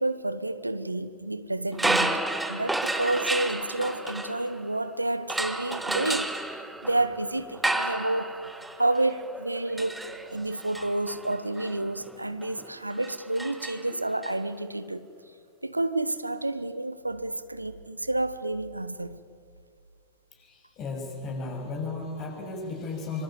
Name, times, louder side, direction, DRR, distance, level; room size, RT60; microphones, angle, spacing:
voice 1, 0.0-8.3 8.8-10.0 10.3-15.1 15.6-19.2, right 2 dB, 85° right, 1.0 m, -30 dB
sound 1, 1.7-4.8 5.3-14.3, right 2 dB, 5° right, 1.5 m, -32 dB
voice 2, 20.4-23.2, left 3 dB, 35° left, 7.3 m, -35 dB
26.0 x 25.0 x 8.9 m
figure-of-eight pair, 90°, 0 cm